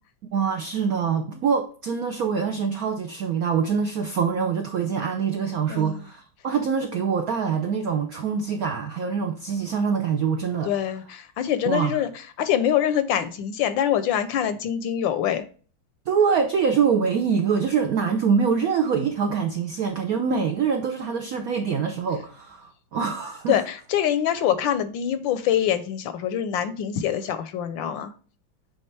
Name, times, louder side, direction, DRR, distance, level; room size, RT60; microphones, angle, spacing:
voice 1, 0.3-10.7 11.6-12.0 16.1-23.6, right 6 dB, 75° right, 0.8 m, -24 dB
voice 2, 5.7-6.0 10.6-12.1 12.4-15.4 23.5-28.1, left 10 dB, 75° left, 1.2 m, -24 dB
8.6 x 3.5 x 3.2 m
omnidirectional pair, 2.3 m